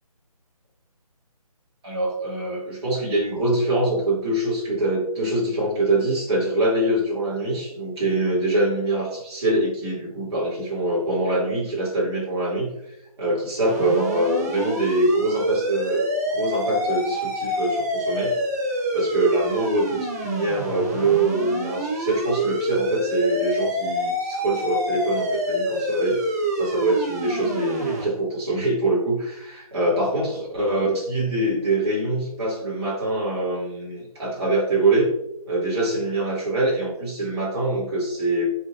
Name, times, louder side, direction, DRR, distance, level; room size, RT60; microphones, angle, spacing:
voice 1, 1.8-12.8 13.2-16.0 16.3-18.4 18.7-26.3 26.6-35.1 35.5-38.5, right 2 dB, 40° right, -6 dB, 2.5 m, -24 dB
sound 1, 13.6-28.0, equal, 25° right, 0.9 m, -27 dB
9.6 x 4.5 x 2.5 m, 0.81 s
figure-of-eight pair, 145°, 19 cm